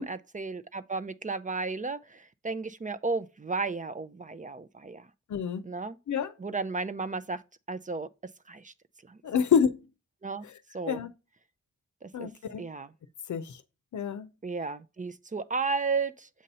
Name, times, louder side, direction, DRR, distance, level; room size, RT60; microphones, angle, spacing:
voice 1, 0.0-5.1 5.6-6.0 6.4-7.4 7.7-8.1 8.5-8.7 9.1-9.2 10.2-10.4 10.7-11.0 12.0-12.3 12.6-12.9 14.4-16.3, right 4 dB, 25° right, 0.5 m, -33 dB
voice 2, 5.3-5.6 6.1-6.3 9.2-9.8 10.9-11.1 12.1-12.6 13.3-13.6 13.9-14.3, left 7 dB, 75° left, 0.6 m, -27 dB
7.5 x 2.7 x 5.3 m
cardioid pair, 40°, 30 cm